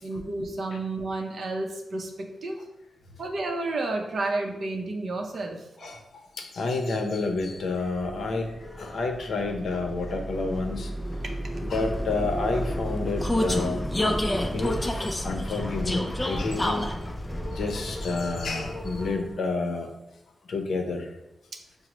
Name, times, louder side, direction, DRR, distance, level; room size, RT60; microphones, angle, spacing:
voice 1, 0.0-2.6 3.2-6.0 11.2-11.3, right 2 dB, 60° right, 3 dB, 0.6 m, -31 dB
voice 2, 6.4-10.9 11.6-13.8 14.4-16.9 17.5-19.9 20.5-21.1, left 3 dB, 70° left, 3 dB, 0.6 m, -29 dB
Vehicle, 7.6-19.4, equal, 15° left, 0.3 m, -30 dB
5.9 x 2.0 x 3.0 m, 0.90 s
wide cardioid pair, 140°, 0 cm